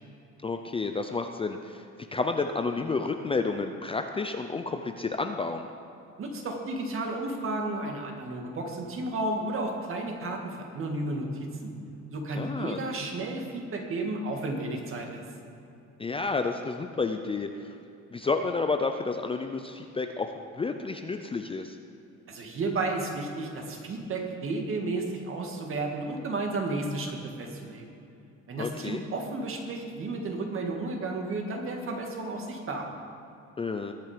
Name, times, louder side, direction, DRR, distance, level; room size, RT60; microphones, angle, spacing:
voice 1, 0.4-1.8 2.1-5.7 12.3-12.8 16.0-17.8 18.1-21.8 28.6-29.0 33.6-33.9, left 4 dB, 20° left, 6 dB, 0.5 m, -30 dB
voice 2, 6.2-11.7 12.1-15.2 22.3-27.8 28.5-32.9, right 2 dB, 45° right, 2 dB, 2.1 m, -32 dB
20.5 x 7.6 x 5.1 m, 2.7 s
cardioid pair, 135°, 30 cm